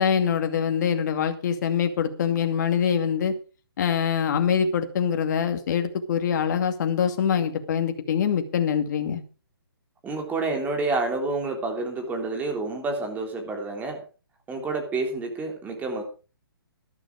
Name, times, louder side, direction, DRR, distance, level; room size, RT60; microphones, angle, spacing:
voice 1, 0.0-3.4 3.8-9.2, left 7 dB, 50° left, 7 dB, 2.3 m, -24 dB
voice 2, 10.0-14.0 14.5-16.0, right 3 dB, 15° right, 3 dB, 3.3 m, -29 dB
12.5 x 12.5 x 4.9 m, 0.35 s
hypercardioid pair, 140°, 13 cm